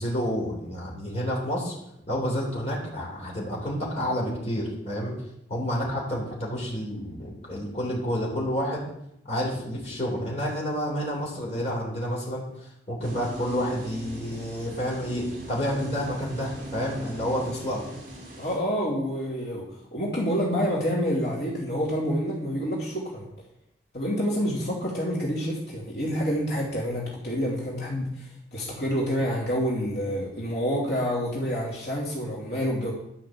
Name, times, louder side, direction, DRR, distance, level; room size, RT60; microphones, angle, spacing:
voice 1, 0.0-1.7 2.1-5.1 5.5-8.9 9.3-17.9, equal, 35° left, -4 dB, 3.4 m, -29 dB
sound 1, 13.0-18.6, equal, 50° right, 4.4 m, -39 dB
voice 2, 18.4-19.7 19.9-23.2 23.9-32.9, equal, 60° left, -4 dB, 2.9 m, -28 dB
11.5 x 5.7 x 7.3 m, 0.78 s
head